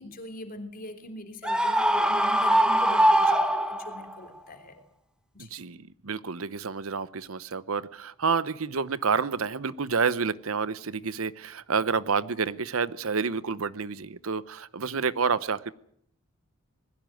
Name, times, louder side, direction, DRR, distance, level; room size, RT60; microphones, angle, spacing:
voice 1, 0.0-4.8 5.3-5.5, left 1 dB, 40° left, 6 dB, 3.3 m, -42 dB
Screaming, 1.4-4.1, right 1 dB, 5° right, 1.4 m, -22 dB
voice 2, 5.4-15.7, right 5 dB, 75° right, 16 dB, 0.8 m, -29 dB
20.5 x 16.0 x 9.2 m, 0.69 s
head